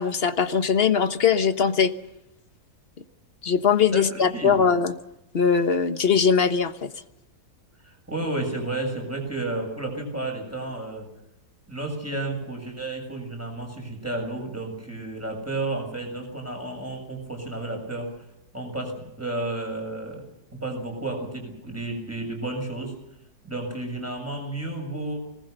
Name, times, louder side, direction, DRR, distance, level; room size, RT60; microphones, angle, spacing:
voice 1, 0.0-1.9 3.4-4.9 5.3-6.9, left 6 dB, 40° left, 9 dB, 1.4 m, -21 dB
voice 2, 3.9-4.7 7.8-11.1 11.7-18.1 18.5-20.3 20.5-22.9 23.4-25.2, right 2 dB, 10° right, 2 dB, 7.1 m, -32 dB
25.5 x 19.5 x 6.7 m, 0.87 s
omnidirectional pair, 1.7 m